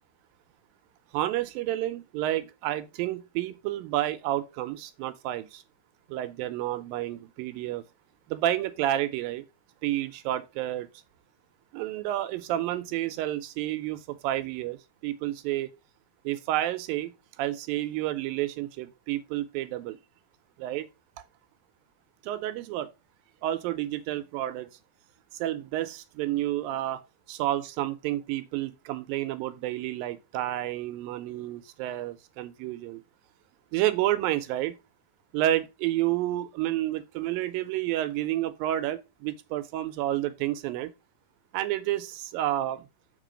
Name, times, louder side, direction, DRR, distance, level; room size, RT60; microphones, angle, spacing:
voice 1, 1.1-5.6 6.1-7.8 8.3-9.4 9.8-10.9 11.7-15.7 16.3-17.1 17.4-20.0 20.6-20.9 22.2-22.9 23.4-24.7 25.4-27.0 27.3-33.0 33.7-34.8 35.3-40.9 41.5-42.8, right 14 dB, 80° right, 2.2 m, -30 dB
7.4 x 3.7 x 4.9 m
omnidirectional pair, 4.3 m